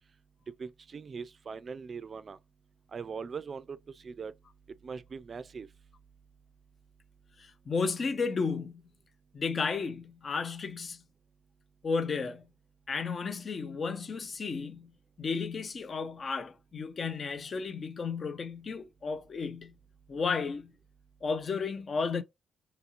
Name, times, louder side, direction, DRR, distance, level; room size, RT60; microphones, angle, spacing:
voice 1, 0.6-2.4 2.9-3.8 4.0-4.3 4.8-5.7, right 5 dB, 45° right, 0.3 m, -40 dB
voice 2, 7.4-8.8 9.3-11.0 11.8-12.4 12.9-14.9 15.2-19.7 20.1-20.7 21.2-22.2, left 5 dB, 45° left, 0.5 m, -33 dB
2.8 x 2.7 x 2.4 m
hypercardioid pair, 45°, 0 cm